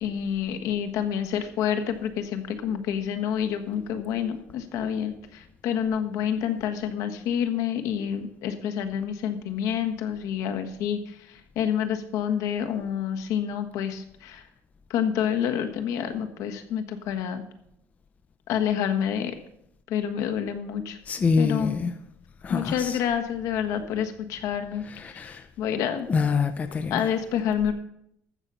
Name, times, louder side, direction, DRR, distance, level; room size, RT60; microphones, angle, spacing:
voice 1, 0.0-14.4 14.9-17.4 18.5-19.3 19.9-21.0 21.4-21.8 22.5-26.1 26.9-27.7, left 8 dB, 75° left, 7 dB, 1.3 m, -28 dB
voice 2, 21.1-21.9 22.4-23.0 24.9-25.5 26.1-27.0, left 5 dB, 25° left, 10 dB, 0.6 m, -25 dB
14.5 x 6.7 x 5.6 m, 0.76 s
cardioid pair, 150°, 6 cm